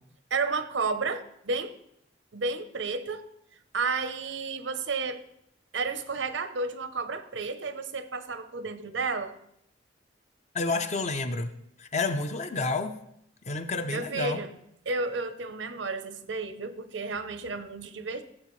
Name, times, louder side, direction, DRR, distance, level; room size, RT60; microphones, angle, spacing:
voice 1, 0.3-1.8 2.3-3.3 3.7-5.2 5.7-9.4 13.9-14.5 14.9-18.2, right 4 dB, 90° right, 11 dB, 0.8 m, -32 dB
voice 2, 10.5-11.5 11.8-13.0 13.4-14.4, left 3 dB, 40° left, 9 dB, 0.6 m, -30 dB
16.0 x 7.4 x 3.2 m, 0.77 s
head